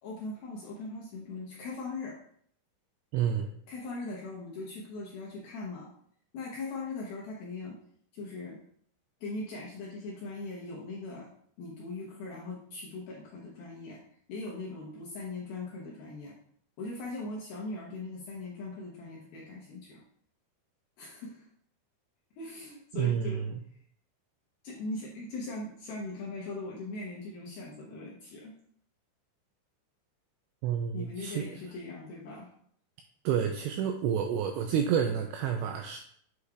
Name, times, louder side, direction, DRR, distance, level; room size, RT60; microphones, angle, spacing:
voice 1, 0.0-2.2 3.7-5.9 6.3-7.8 8.1-8.6 9.2-11.3 11.6-14.0 14.3-16.4 16.8-20.0 21.0-21.5 22.4-23.5 24.6-28.5 30.9-32.5, left 3 dB, 75° left, -4 dB, 2.2 m, -40 dB
voice 2, 3.1-3.5 22.9-23.6 30.6-31.5 33.2-36.0, right 8 dB, 90° right, 4 dB, 2.5 m, -29 dB
8.3 x 6.5 x 2.4 m, 0.63 s
omnidirectional pair, 5.6 m